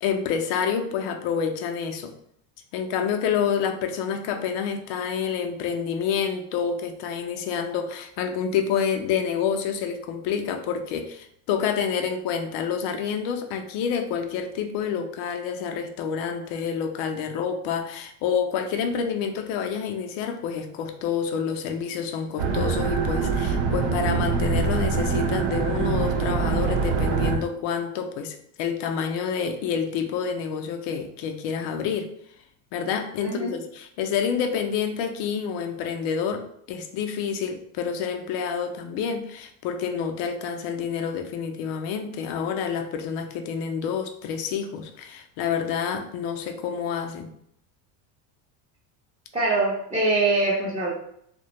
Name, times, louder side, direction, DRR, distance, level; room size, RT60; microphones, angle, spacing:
voice 1, 0.0-2.1 2.7-32.1 32.7-47.3, left 7 dB, 60° left, 6 dB, 0.5 m, -28 dB
sound 1, 22.4-27.4, right 5 dB, 75° right, 0.7 m, -24 dB
voice 2, 33.2-33.5 49.3-50.9, right 2 dB, 15° right, -9 dB, 0.6 m, -23 dB
2.3 x 2.2 x 2.8 m, 0.69 s
supercardioid pair, 115°, 48 cm